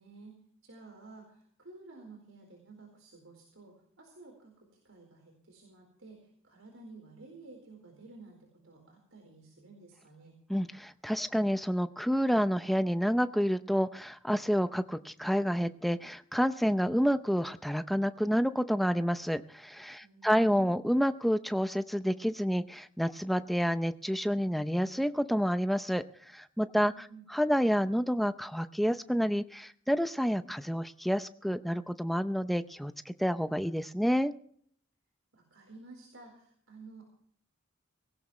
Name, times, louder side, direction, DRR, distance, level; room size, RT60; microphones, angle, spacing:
voice 1, 0.0-10.4 20.0-20.8 26.8-27.3 35.3-37.0, right 3 dB, 70° right, 1 dB, 4.4 m, -52 dB
voice 2, 10.5-26.9 27.3-34.3, equal, ahead, 10 dB, 0.6 m, -29 dB
19.0 x 17.0 x 3.2 m, 0.62 s
head